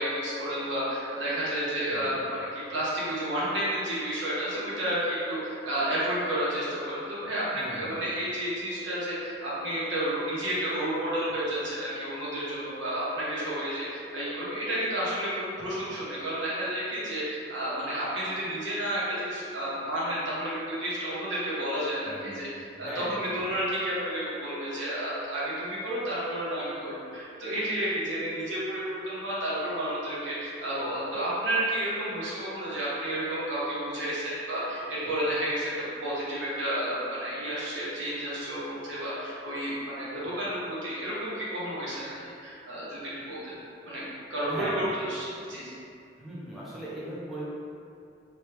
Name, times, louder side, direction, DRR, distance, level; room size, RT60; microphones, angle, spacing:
voice 1, 0.0-35.7 36.0-42.1 42.4-43.5 43.8-44.0 44.3-45.8, right 1 dB, 75° right, -9 dB, 1.0 m, -31 dB
voice 2, 7.5-8.0 22.0-22.5 22.7-23.5 44.5-44.8 46.2-47.5, right 1 dB, ahead, -9 dB, 0.5 m, -39 dB
3.0 x 2.2 x 3.2 m, 2.5 s
head